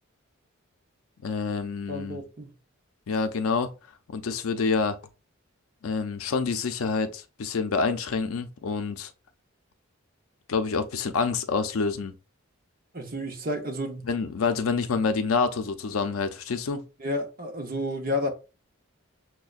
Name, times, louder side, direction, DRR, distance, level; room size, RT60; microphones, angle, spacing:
voice 1, 1.2-2.2 3.1-3.7 4.1-5.0 5.8-9.1 10.5-12.1 14.0-16.8, left 4 dB, 90° left, 0.5 m, -27 dB
voice 2, 1.9-2.5 12.9-14.1 17.0-18.3, left 1 dB, 45° right, 0.8 m, -31 dB
6.1 x 2.1 x 2.4 m
head